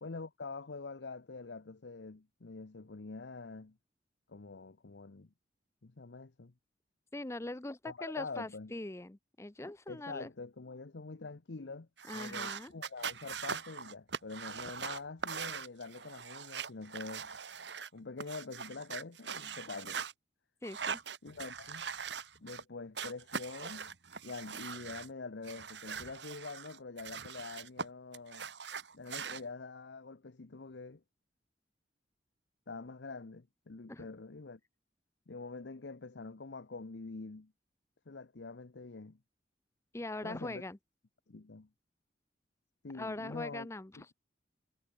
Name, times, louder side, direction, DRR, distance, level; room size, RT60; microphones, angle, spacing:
voice 1, 0.0-3.8 4.3-5.3 5.8-6.5 7.8-8.7 9.9-11.9 12.1-17.3 17.9-20.1 21.2-21.9 22.4-23.9 24.2-28.5 28.9-31.0 32.7-34.6 35.3-37.5 38.1-39.2 40.2-40.6 41.3-41.7 42.8-43.7 44.0-44.1, left 3 dB, 75° left, 0.8 m, -45 dB
voice 2, 7.1-10.3 12.0-12.7 20.6-21.0 33.9-34.1 39.9-40.8 42.9-43.9, left 2 dB, 15° left, 0.6 m, -42 dB
sound 1, 12.0-17.9 18.2-20.1 20.6-22.6 22.9-25.1 25.4-27.8 28.1-29.4, right 6 dB, 75° right, 2.3 m, -41 dB
head